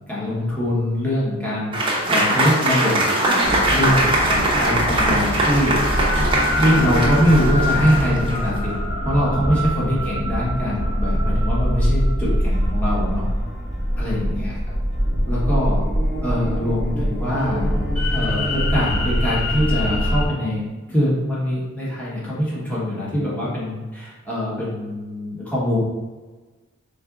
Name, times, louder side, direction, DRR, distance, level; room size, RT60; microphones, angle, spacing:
voice 1, 0.1-1.7 2.1-3.0 3.7-5.8 6.6-13.2 14.0-14.8 15.3-15.8 16.2-17.7 18.1-20.6 20.9-25.8, equal, 10° left, -8 dB, 1.1 m, -23 dB
Applause / Crowd, 1.7-8.5, right 1 dB, 25° right, 0.7 m, -21 dB
sound 1, 3.4-20.3, equal, 35° left, 1.1 m, -23 dB
5.1 x 3.9 x 2.4 m, 1.3 s
head